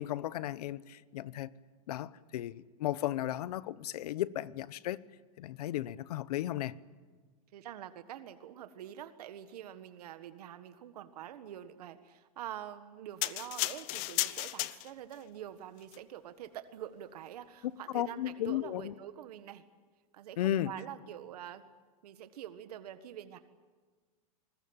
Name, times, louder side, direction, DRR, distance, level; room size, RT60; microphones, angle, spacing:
voice 1, 0.0-1.5 1.9-5.0 5.4-6.7 17.9-18.9 20.4-20.7, left 13 dB, 80° left, 1.0 m, -35 dB
voice 2, 7.5-19.6 20.1-21.6 22.0-23.4, right 11 dB, 85° right, 1.6 m, -46 dB
sound 1, 13.2-15.2 15.8-16.0, left 18 dB, 40° left, 0.9 m, -34 dB
27.5 x 21.5 x 8.9 m
supercardioid pair, 170°, 19 cm